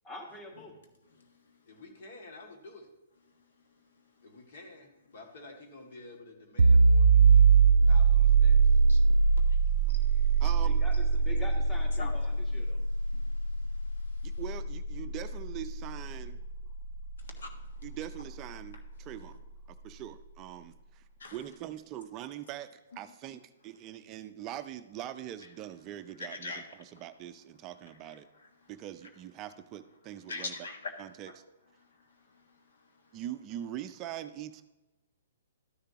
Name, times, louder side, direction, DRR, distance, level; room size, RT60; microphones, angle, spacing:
voice 1, 0.0-0.7 10.6-12.8, equal, 15° left, 2 dB, 1.6 m, -45 dB
voice 2, 1.7-2.9 4.2-7.4 7.8-8.8, left 2 dB, 60° left, 2 dB, 2.3 m, -50 dB
sound 1, 6.6-18.0, right 5 dB, 85° right, 0.4 m, -23 dB
voice 3, 8.9-9.6 9.9-10.5 12.0-12.2 13.1-14.4 17.2-17.7 21.2-21.4 26.2-27.0 28.6-28.7 30.3-30.9 31.2-31.3 31.9-32.8, left 3 dB, 75° left, 5 dB, 1.5 m, -44 dB
voice 4, 10.4-10.8 14.2-16.4 17.8-19.4 19.8-21.0 21.3-28.3 28.7-30.5 31.0-31.3 33.1-34.6, right 12 dB, 30° right, 10 dB, 0.4 m, -42 dB
12.5 x 6.6 x 3.0 m, 1.0 s
hypercardioid pair, 135°, 0 cm